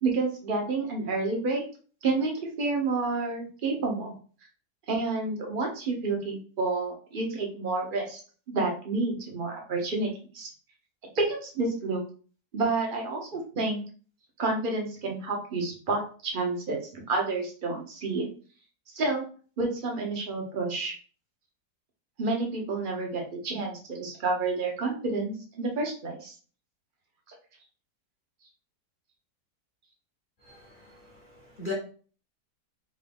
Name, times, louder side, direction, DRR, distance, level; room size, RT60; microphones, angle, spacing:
voice 1, 0.0-1.6 2.0-4.1 4.9-8.2 8.5-10.5 11.1-12.0 12.5-13.8 14.4-18.3 18.9-19.2 19.6-20.9 22.2-26.3, right 3 dB, 40° right, 1 dB, 0.9 m, -29 dB
voice 2, 30.4-31.7, left 4 dB, 40° left, -5 dB, 0.9 m, -40 dB
3.7 x 2.7 x 3.5 m, 0.40 s
omnidirectional pair, 1.7 m